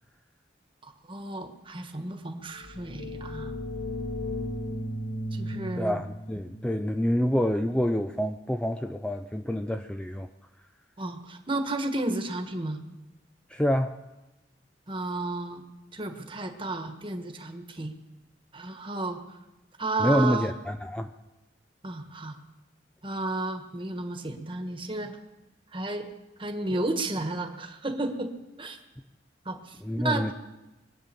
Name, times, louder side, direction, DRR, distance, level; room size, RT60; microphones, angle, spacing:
voice 1, 0.8-3.5 5.3-5.9 11.0-12.8 14.9-15.6 15.9-17.9 18.5-19.2 19.8-20.4 21.8-22.3 23.0-25.2 25.7-26.1 26.4-28.3 28.6-28.8 29.4-30.3, right 2 dB, 30° right, 6 dB, 1.5 m, -32 dB
sound 1, 2.6-8.1, left 1 dB, 90° left, 3.4 m, -36 dB
voice 2, 5.8-10.3 13.5-13.9 20.0-21.1 29.8-30.3, equal, 5° left, 6 dB, 0.5 m, -27 dB
23.0 x 9.1 x 6.9 m, 1.0 s
head